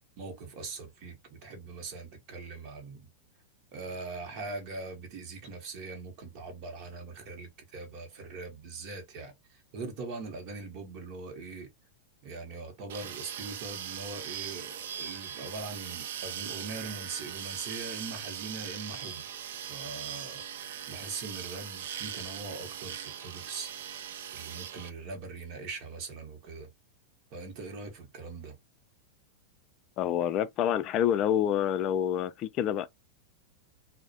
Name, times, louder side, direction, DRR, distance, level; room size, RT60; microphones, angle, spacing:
voice 1, 0.2-3.1 3.7-11.7 12.2-19.3 19.7-20.4 20.9-23.7 24.3-26.7 27.3-28.6, right 3 dB, 45° right, 0.8 m, -41 dB
sound 1, 12.9-24.9, right 9 dB, 75° right, 0.4 m, -40 dB
voice 2, 30.0-32.9, left 10 dB, 35° left, 0.3 m, -27 dB
2.3 x 2.0 x 2.5 m
supercardioid pair, 135°, 0 cm